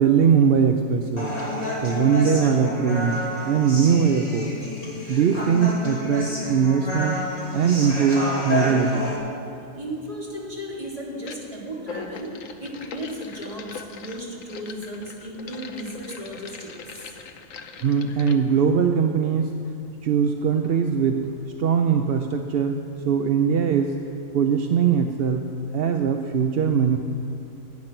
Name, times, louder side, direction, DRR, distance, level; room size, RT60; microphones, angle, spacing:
voice 1, 0.0-1.4 1.8-4.7 5.1-7.2 7.5-9.0 17.8-19.5 20.0-21.3 21.6-23.9 24.3-27.0, right 7 dB, 55° right, 5 dB, 0.7 m, -21 dB
Human voice, 1.2-9.2, left 1 dB, 25° left, 2.7 m, -30 dB
voice 2, 9.8-17.1, equal, 20° right, -5 dB, 3.0 m, -35 dB
sound 1, 9.9-10.1 11.2-11.5 11.8-18.4, left 5 dB, 65° left, 1.2 m, -41 dB
19.0 x 9.3 x 5.9 m, 2.6 s
omnidirectional pair, 1.6 m